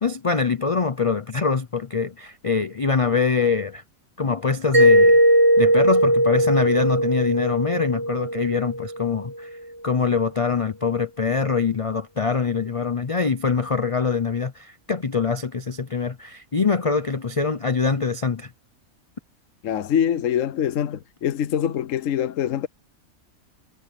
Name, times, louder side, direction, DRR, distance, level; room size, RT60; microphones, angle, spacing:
voice 1, 0.0-3.8 4.2-5.2 5.6-9.5 9.8-18.5, left 5 dB, 35° left, 0.6 m, -24 dB
Mallet percussion, 4.7-9.4, right 1 dB, 60° right, 4.5 m, -19 dB
voice 2, 19.6-22.7, left 9 dB, 65° left, 1.1 m, -24 dB
omnidirectional pair, 1.5 m